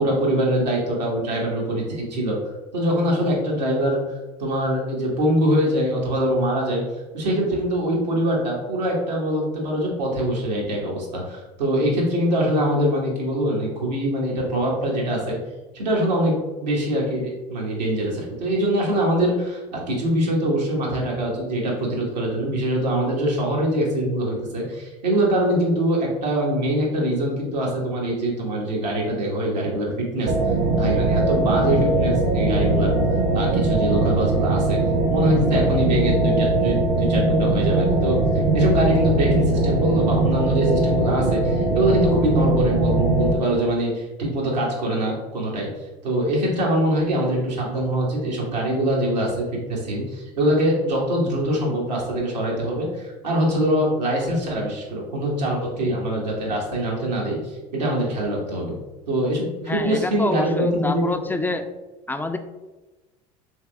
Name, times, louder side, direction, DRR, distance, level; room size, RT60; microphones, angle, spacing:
voice 1, 0.0-2.4 2.7-4.0 4.4-6.8 7.1-15.4 15.7-30.3 30.8-32.9 33.3-34.8 35.1-38.2 38.5-45.7 46.0-58.7 59.1-61.0, right 1 dB, 85° right, -3 dB, 1.2 m, -23 dB
sound 1, 30.3-43.3, right 2 dB, 55° right, 0.8 m, -20 dB
voice 2, 59.7-61.7 62.1-62.4, left 2 dB, 10° left, 7 dB, 0.3 m, -27 dB
3.5 x 3.3 x 3.3 m, 1.1 s
hypercardioid pair, 70°, 21 cm